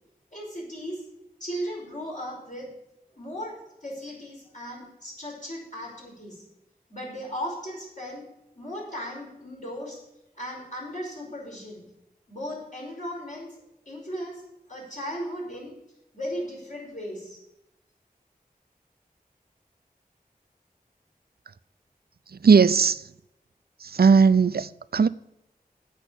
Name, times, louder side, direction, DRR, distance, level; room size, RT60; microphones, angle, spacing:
voice 1, 0.3-1.1 1.4-2.8 3.2-6.5 6.9-10.0 10.4-11.9 12.3-14.4 14.7-15.8 16.1-17.4, equal, 55° left, 5.3 m, -36 dB
voice 2, 22.3-23.1 23.8-25.1, right 5 dB, 80° right, 0.4 m, -18 dB
8.3 x 6.9 x 8.4 m
wide cardioid pair, 50°, 16 cm